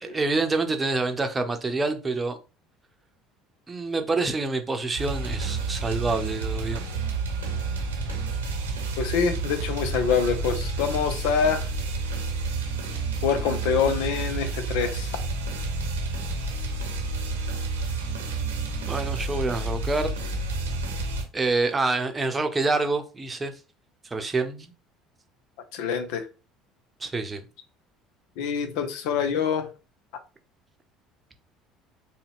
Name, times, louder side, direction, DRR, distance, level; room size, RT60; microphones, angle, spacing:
voice 1, 0.0-2.4 3.7-6.9 18.9-20.2 21.3-23.5 24.0-24.7 27.0-27.4, right 3 dB, 25° right, 0.8 m, -27 dB
sound 1, 5.0-21.2, right 3 dB, 90° right, 0.9 m, -30 dB
voice 2, 9.0-11.7 13.2-15.2 25.7-26.3 28.4-29.7, left 6 dB, 70° left, 0.6 m, -25 dB
3.7 x 2.3 x 3.5 m
hypercardioid pair, 65°, 0 cm